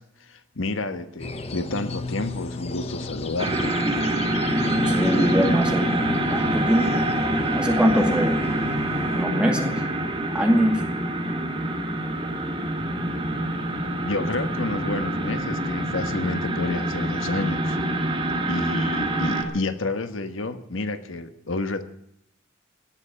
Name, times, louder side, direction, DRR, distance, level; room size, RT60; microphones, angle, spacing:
voice 1, 0.0-3.8 14.0-17.8 18.5-21.8, left 2 dB, 85° left, 9 dB, 1.3 m, -30 dB
sound 1, 1.2-9.2, left 2 dB, 30° left, 0.8 m, -32 dB
sound 2, 3.4-19.4, right 1 dB, 25° right, 2.3 m, -26 dB
voice 2, 4.9-5.9 6.3-7.1 7.6-8.4 9.1-9.8 10.3-10.8, equal, 5° right, 2 dB, 2.2 m, -22 dB
sound 3, 12.8-18.6, equal, 55° right, 5.1 m, -40 dB
17.5 x 7.1 x 9.8 m, 0.73 s
head